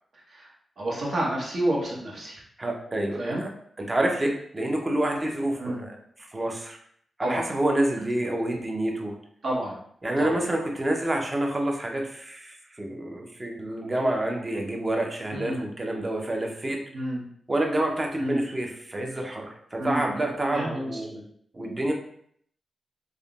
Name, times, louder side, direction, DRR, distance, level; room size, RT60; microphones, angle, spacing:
voice 1, 0.8-2.4 3.2-3.4 5.6-5.9 7.2-7.4 9.4-9.8 10.2-10.4 15.3-15.7 16.9-17.2 18.2-18.4 19.8-20.1 20.5-21.2, right 1 dB, 60° right, -3 dB, 0.9 m, -29 dB
voice 2, 2.6-3.5 3.8-5.9 6.2-6.8 7.2-9.1 10.0-16.8 17.5-21.1 21.5-21.9, right 1 dB, 30° right, 1 dB, 0.6 m, -28 dB
3.5 x 2.1 x 2.3 m, 0.65 s
cardioid pair, 65°, 0 cm